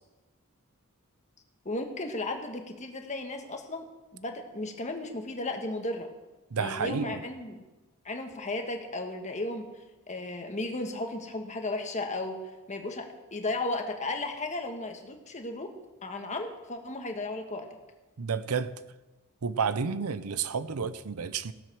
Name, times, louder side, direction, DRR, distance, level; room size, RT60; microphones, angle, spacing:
voice 1, 1.6-3.8 4.1-6.1 6.6-7.6 8.0-15.7 16.0-17.7, left 2 dB, 35° left, 4 dB, 1.4 m, -35 dB
voice 2, 6.5-7.2 18.2-18.7 19.4-21.5, right 5 dB, 85° right, 14 dB, 0.6 m, -30 dB
16.5 x 7.7 x 6.1 m, 1.2 s
head